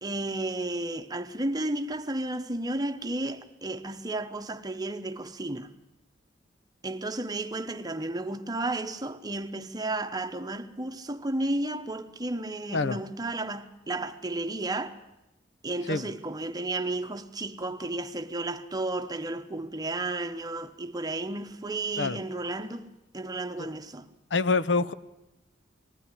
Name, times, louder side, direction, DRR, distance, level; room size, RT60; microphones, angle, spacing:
voice 1, 0.0-5.7 6.8-14.9 15.6-22.9 23.1-24.1, right 2 dB, 20° right, 0.9 m, -33 dB
voice 2, 24.3-24.9, left 3 dB, 75° left, 0.7 m, -26 dB
20.5 x 15.0 x 9.9 m
head